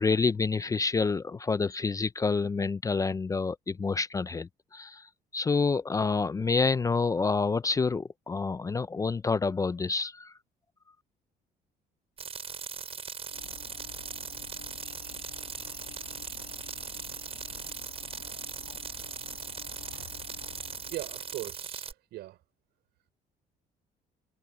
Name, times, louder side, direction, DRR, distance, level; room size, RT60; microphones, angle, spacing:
voice 1, 0.0-5.0 5.3-10.3, left 4 dB, 20° left, 0.4 m, -28 dB
sound 1, 12.2-21.9, right 6 dB, 35° right, 6.5 m, -39 dB
Train / Engine / Alarm, 13.3-21.5, left 16 dB, 80° left, 5.3 m, -51 dB
voice 2, 20.9-22.4, right 16 dB, 80° right, 6.1 m, -39 dB
cardioid pair, 110°, 17 cm